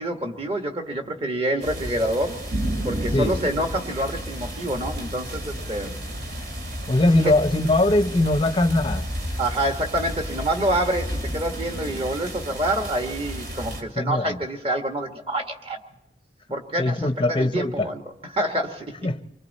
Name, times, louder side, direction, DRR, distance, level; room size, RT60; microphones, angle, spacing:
voice 1, 0.0-2.4 2.8-6.0 9.4-15.8 16.5-18.0 18.3-19.0, right 1 dB, 30° right, 1.8 m, -27 dB
sound 1, 1.6-13.8, equal, 60° right, 2.8 m, -32 dB
voice 2, 6.9-9.1 14.0-14.4 16.8-17.9 19.0-19.2, left 2 dB, 25° left, 0.7 m, -21 dB
29.5 x 24.0 x 4.3 m
head